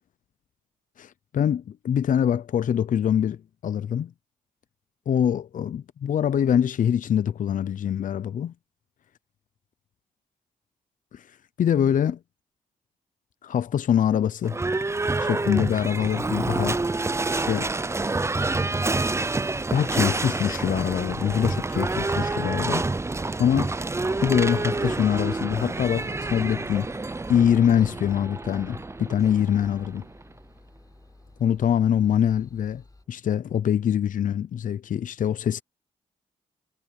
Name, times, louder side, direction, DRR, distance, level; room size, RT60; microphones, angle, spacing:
voice 1, 1.0-3.4 3.6-4.1 5.1-8.5 11.1-12.2 13.4-14.6 15.2-16.8 17.3-17.7 19.7-22.9 23.4-23.7 24.2-26.9 27.3-30.0 31.4-32.8 33.1-35.6, left 9 dB, 65° left, 0.7 m, -24 dB
Livestock farm animals working animals / Bell, 14.4-30.3, right 3 dB, 20° right, 0.7 m, -28 dB
sound 1, 22.8-33.0, left 2 dB, 25° left, 5.1 m, -53 dB
supercardioid pair, 50°, 15 cm